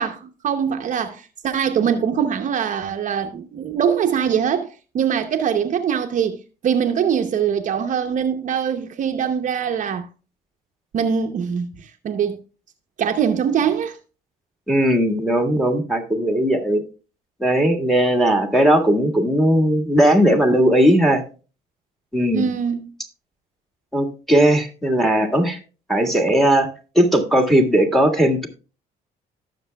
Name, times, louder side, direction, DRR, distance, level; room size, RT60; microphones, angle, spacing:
voice 1, 0.0-6.4 6.6-10.1 10.9-12.4 13.0-14.0 22.3-22.8, right 7 dB, 50° right, 0.8 m, -22 dB
voice 2, 14.7-16.8 17.4-21.2 22.1-22.5 23.9-25.6 25.9-26.7 26.9-28.5, right 1 dB, ahead, 1.6 m, -17 dB
18.0 x 6.7 x 2.2 m
cardioid pair, 110°, 17 cm